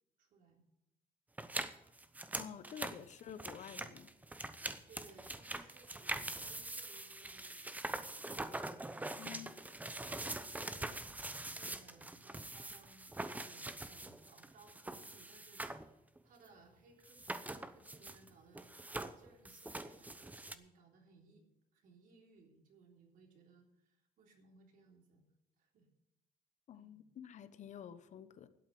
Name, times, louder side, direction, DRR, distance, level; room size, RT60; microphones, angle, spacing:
voice 1, 0.2-0.6 2.6-3.0 3.2-3.5 4.9-7.8 10.3-18.8 19.2-21.4 21.7-25.2 25.6-25.9 26.7-27.0, right 4 dB, 65° right, 3.5 m, -64 dB
sound 1, 1.4-15.9 16.2-16.3 17.0-18.3 18.5-20.6, right 2 dB, 10° right, 0.8 m, -44 dB
voice 2, 2.3-4.1 9.2-9.6 26.7-28.5, left 9 dB, 55° left, 1.0 m, -50 dB
12.0 x 8.3 x 7.9 m
cardioid pair, 105°, 15 cm